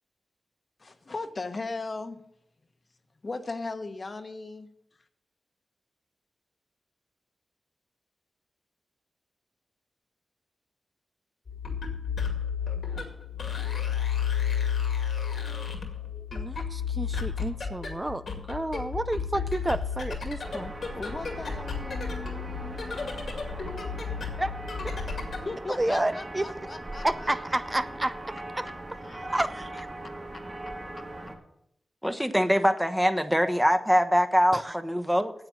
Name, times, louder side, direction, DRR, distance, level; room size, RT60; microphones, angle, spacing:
voice 1, 0.8-2.2 3.2-4.7 20.9-24.0 25.4-27.6 29.0-29.3, left 3 dB, 50° left, 8 dB, 1.3 m, -38 dB
sound 1, 11.5-25.5, left 7 dB, 75° left, 2.2 m, -32 dB
voice 2, 16.3-18.2 18.5-20.7 24.4-24.5 25.8-26.4 27.0-28.7 29.2-29.9 34.5-34.7, right 1 dB, 25° right, 12 dB, 0.5 m, -30 dB
sound 2, 20.4-31.4, right 1 dB, 45° right, 2.9 m, -40 dB
voice 3, 32.0-35.3, equal, 5° right, 7 dB, 1.2 m, -23 dB
9.0 x 7.8 x 7.4 m, 0.74 s
cardioid pair, 40°, 0 cm